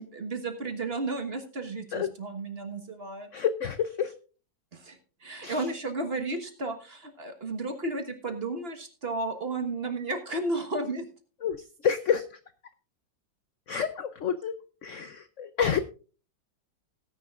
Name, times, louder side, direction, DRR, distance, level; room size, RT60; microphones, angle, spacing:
voice 1, 0.0-3.3 4.7-11.0, right 2 dB, 35° right, 7 dB, 1.4 m, -33 dB
voice 2, 3.3-4.1 5.4-5.7 11.4-12.3 13.7-14.5 14.8-15.8, left 7 dB, 65° left, 11 dB, 0.8 m, -29 dB
18.5 x 10.0 x 2.4 m, 0.36 s
omnidirectional pair, 2.0 m